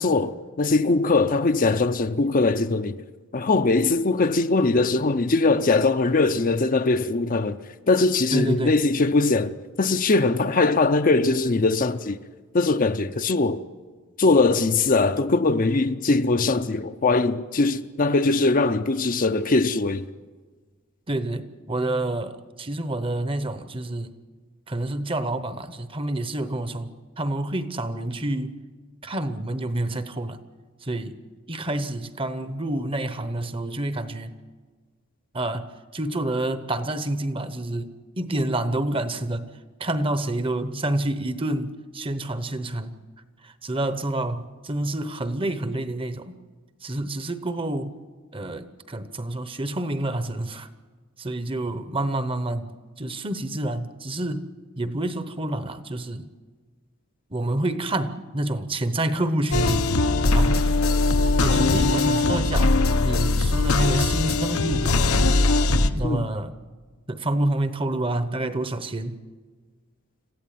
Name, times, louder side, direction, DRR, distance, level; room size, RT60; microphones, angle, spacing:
voice 1, 0.0-3.0 3.3-7.6 7.9-12.2 12.5-13.6 14.2-20.1 61.5-61.9 66.0-66.3, left 3 dB, 40° left, 0.6 m, -21 dB
voice 2, 8.3-8.7 21.1-24.1 24.7-26.9 27.2-28.6 29.0-30.4 30.8-31.2 31.5-34.3 35.3-39.5 39.8-43.0 43.4-46.4 46.8-48.0 48.3-50.7 51.2-52.7 53.0-54.5 54.8-56.3 57.3-59.9 60.3-60.6 61.4-62.7 63.0-65.1 65.9-66.5 67.1-69.2, right 1 dB, 25° right, 0.9 m, -28 dB
sound 1, 59.5-65.9, left 3 dB, 85° left, 1.1 m, -20 dB
26.5 x 15.0 x 9.2 m
head